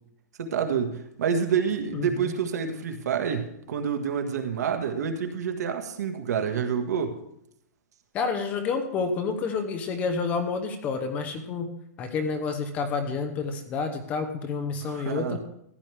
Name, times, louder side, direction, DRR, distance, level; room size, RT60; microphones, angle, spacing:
voice 1, 0.4-7.1 14.8-15.4, right 7 dB, 85° right, 6 dB, 1.7 m, -28 dB
voice 2, 1.9-2.3 8.1-11.7 12.0-15.4, left 4 dB, 15° left, 7 dB, 0.9 m, -29 dB
14.5 x 10.5 x 3.5 m, 0.76 s
supercardioid pair, 175°, 9 cm